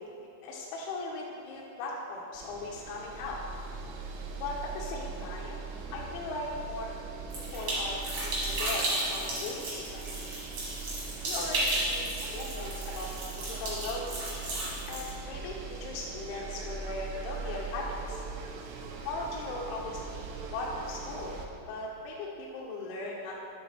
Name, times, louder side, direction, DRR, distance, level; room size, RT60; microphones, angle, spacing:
voice 1, 0.0-3.4 4.4-7.0 7.3-10.2 11.2-13.1 13.5-14.3 14.9-18.3 19.0-20.3 20.5-23.5, left 2 dB, 85° left, -3 dB, 2.8 m, -38 dB
sound 1, 2.3-21.5, right 4 dB, 85° right, 3.0 m, -41 dB
sound 2, 7.3-15.1, right 1 dB, 70° right, 1.6 m, -34 dB
9.8 x 3.6 x 3.2 m, 2.9 s
omnidirectional pair, 5.5 m